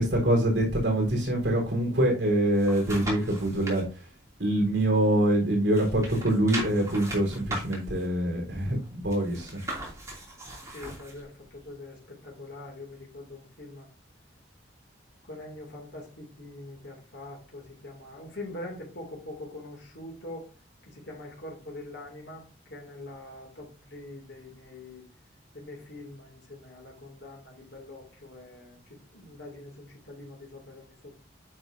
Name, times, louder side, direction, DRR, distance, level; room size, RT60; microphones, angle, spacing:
voice 1, 0.0-4.0 4.4-9.6 10.5-10.6, right 1 dB, 65° right, 1 dB, 3.9 m, -25 dB
sound 1, 2.2-3.8 4.3-5.4 5.7-11.2 11.7-11.8, right 1 dB, 15° right, 2.7 m, -39 dB
voice 2, 10.6-13.9 15.3-20.5 20.9-25.0 25.5-31.1, left 2 dB, 65° left, -1 dB, 2.6 m, -43 dB
9.0 x 6.0 x 2.7 m, 0.35 s
head